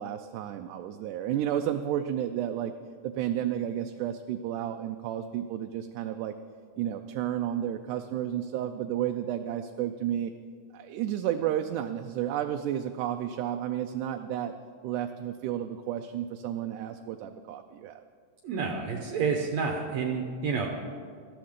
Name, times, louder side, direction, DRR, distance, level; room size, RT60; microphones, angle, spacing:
voice 1, 0.0-2.7 3.0-6.3 6.8-10.3 10.7-14.6 14.8-18.0, right 11 dB, 85° right, 6 dB, 2.0 m, -32 dB
voice 2, 18.4-20.7, right 5 dB, 70° right, 2 dB, 2.0 m, -29 dB
19.5 x 13.5 x 3.7 m, 2.1 s
omnidirectional pair, 3.6 m